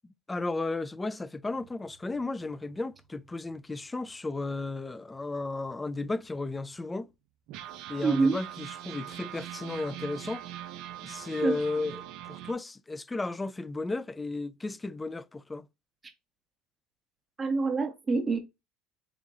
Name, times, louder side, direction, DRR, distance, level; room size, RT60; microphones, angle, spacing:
voice 1, 0.3-7.1 7.9-10.4 11.0-15.7, left 3 dB, 15° left, 0.4 m, -34 dB
sound 1, 1.4-4.6 5.1-5.2 5.4-5.6 6.2-6.3 7.5-12.5, right 12 dB, 65° right, 0.6 m, -42 dB
voice 2, 8.0-8.4 11.4-11.6 17.4-18.4, right 4 dB, 20° right, 1.2 m, -26 dB
3.7 x 3.6 x 3.0 m
hypercardioid pair, 80°, 0 cm